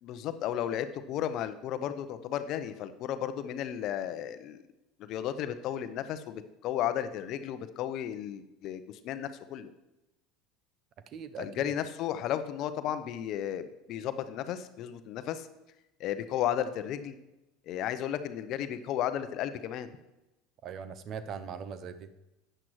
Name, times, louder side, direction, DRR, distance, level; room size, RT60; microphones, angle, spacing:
voice 1, 0.0-4.6 5.0-9.7 11.4-15.5 16.0-17.2 17.7-20.0, left 10 dB, 50° left, 11 dB, 0.7 m, -34 dB
voice 2, 11.1-11.7 20.6-22.1, right 6 dB, 45° right, 12 dB, 0.6 m, -40 dB
13.0 x 8.9 x 3.1 m, 0.99 s
hypercardioid pair, 75°, 0 cm